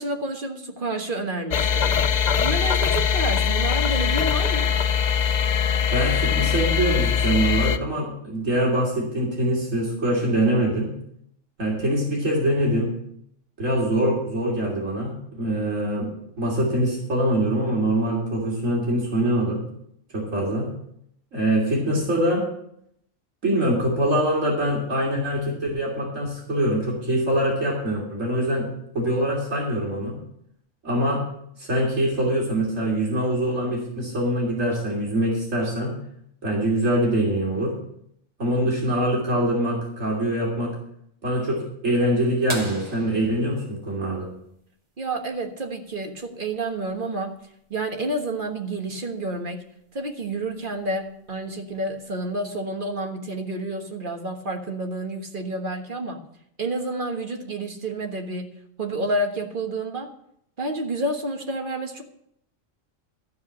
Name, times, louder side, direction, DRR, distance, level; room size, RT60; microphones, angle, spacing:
voice 1, 0.0-1.9 2.4-4.7 45.0-47.3 47.7-49.6 49.9-56.2 56.6-58.4 58.8-60.1 60.6-62.0, right 2 dB, 40° right, 3 dB, 1.6 m, -29 dB
sound 1, 1.5-7.8, left 7 dB, 50° left, 0.5 m, -22 dB
voice 2, 5.9-10.9 11.6-12.9 13.6-16.1 16.4-19.6 20.1-20.7 21.3-22.4 23.4-28.7 28.9-30.2 30.8-31.2 31.6-36.0 36.4-37.8 38.4-40.7 41.2-44.3, right 1 dB, 85° right, -3 dB, 3.4 m, -24 dB
sound 2, 42.5-44.9 46.9-47.0 49.2-49.3 51.0-51.3 52.1-52.2, right 1 dB, 25° right, 1.5 m, -37 dB
14.5 x 4.8 x 8.6 m, 0.73 s
omnidirectional pair, 1.3 m